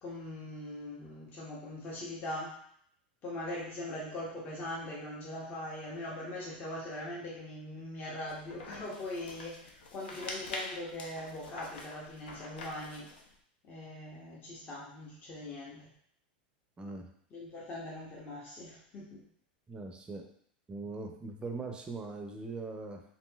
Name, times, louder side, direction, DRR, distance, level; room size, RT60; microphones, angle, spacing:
voice 1, 0.0-2.6 3.2-13.1 13.6-15.9 17.3-19.2, left 1 dB, 35° left, -5 dB, 0.8 m, -41 dB
sound 1, 8.2-13.3, left 2 dB, 80° left, 0.6 m, -45 dB
voice 2, 16.8-17.1 19.7-20.3 20.7-23.0, right 3 dB, 15° right, 3 dB, 0.4 m, -41 dB
2.9 x 2.7 x 2.2 m, 0.65 s
hypercardioid pair, 110°, 5 cm